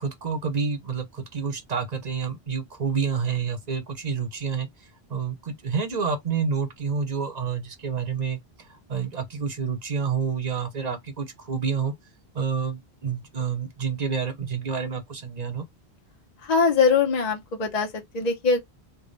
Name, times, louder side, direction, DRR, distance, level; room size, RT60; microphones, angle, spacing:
voice 1, 0.0-4.7 5.1-8.4 8.9-11.9 12.3-15.6, right 6 dB, 45° right, 0.8 m, -28 dB
voice 2, 16.4-18.6, left 5 dB, 45° left, 0.8 m, -22 dB
3.4 x 2.2 x 3.9 m
omnidirectional pair, 1.1 m